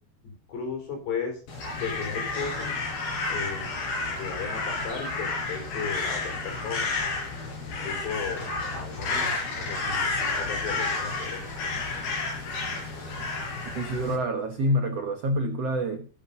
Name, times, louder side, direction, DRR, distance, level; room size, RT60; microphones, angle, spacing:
voice 1, 0.5-1.4 1.8-2.7 3.3-3.7 4.2-6.9 7.6-8.5 8.7-11.4, left 5 dB, 80° left, 6.2 m, -35 dB
Crow, 1.5-14.2, left 3 dB, 65° left, 6.1 m, -31 dB
voice 2, 13.7-16.1, equal, 85° right, 1.4 m, -27 dB
16.0 x 7.1 x 6.7 m
omnidirectional pair, 4.8 m